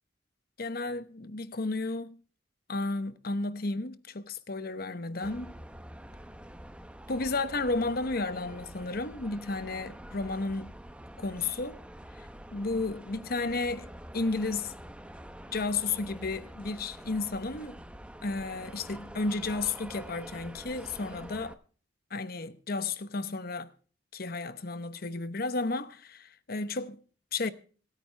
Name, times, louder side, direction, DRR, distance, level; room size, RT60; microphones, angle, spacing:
voice 1, 0.6-2.2 2.7-5.5 7.1-10.7 11.2-11.8 12.2-14.8 15.5-17.8 18.2-21.6 22.1-23.7 24.1-27.0 27.3-27.5, left 3 dB, 55° left, 1.0 m, -33 dB
sound 1, 5.2-21.5, right 1 dB, 5° right, 0.7 m, -46 dB
26.0 x 9.2 x 3.4 m
head